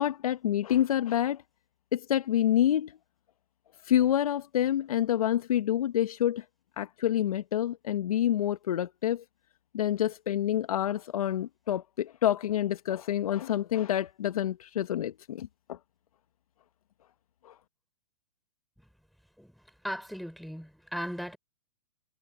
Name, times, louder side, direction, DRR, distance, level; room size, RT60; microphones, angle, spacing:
voice 1, 0.0-1.4 1.9-2.9 3.8-6.4 6.8-9.2 9.7-15.8 17.4-17.5, left 11 dB, 65° left, 1.1 m, -27 dB
voice 2, 19.8-21.4, equal, ahead, 4.7 m, -37 dB
hypercardioid pair, 140°, 20 cm